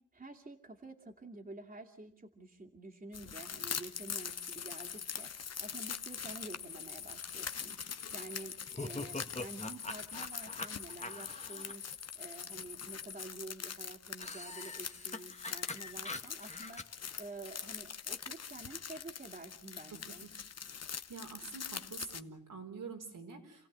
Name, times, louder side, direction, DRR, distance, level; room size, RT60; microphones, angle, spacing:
voice 1, 0.0-11.8 12.1-20.2, right 2 dB, 30° right, 1 dB, 2.6 m, -49 dB
sound 1, 3.1-22.2, left 7 dB, 55° left, 1.1 m, -44 dB
sound 2, 4.0-13.2, left 7 dB, 75° left, 1.4 m, -48 dB
sound 3, 8.7-11.7 14.2-16.8, left 2 dB, 20° left, 1.6 m, -43 dB
voice 2, 21.1-23.7, right 4 dB, 85° right, 2 dB, 5.2 m, -46 dB
28.5 x 16.5 x 9.4 m, 0.66 s
wide cardioid pair, 90°, 31 cm